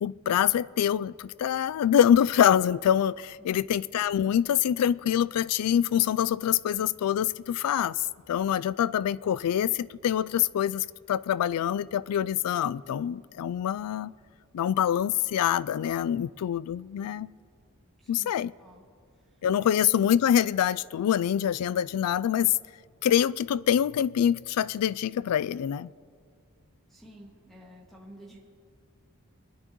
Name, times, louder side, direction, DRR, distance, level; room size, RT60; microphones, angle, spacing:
voice 1, 0.0-14.1 14.5-17.3 18.1-18.5 19.4-22.5 23.0-25.9, left 9 dB, 85° left, 18 dB, 0.3 m, -25 dB
voice 2, 18.0-18.3 18.6-18.8 19.1-19.7 26.9-28.4, right 1 dB, ahead, -4 dB, 1.9 m, -51 dB
23.5 x 10.0 x 3.0 m, 2.1 s
head